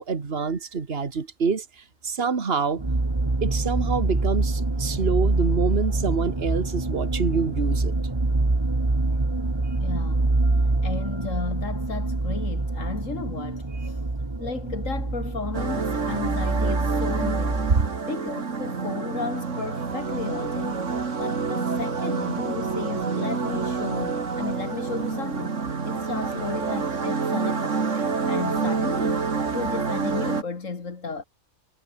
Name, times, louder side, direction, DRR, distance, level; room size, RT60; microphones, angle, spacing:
voice 1, 0.0-1.7 2.0-2.8 3.4-7.9 9.7-9.8 13.8-13.9 17.8-17.9, right 5 dB, 50° right, 2.0 m, -26 dB
sound 1, 2.8-17.7, right 2 dB, 20° right, 1.5 m, -25 dB
voice 2, 9.8-10.3 10.8-14.0 14.4-17.6 18.1-29.2 29.5-31.2, left 4 dB, 85° left, 2.7 m, -34 dB
sound 2, 15.5-30.4, right 5 dB, 70° right, 2.4 m, -28 dB
omnidirectional pair, 1.3 m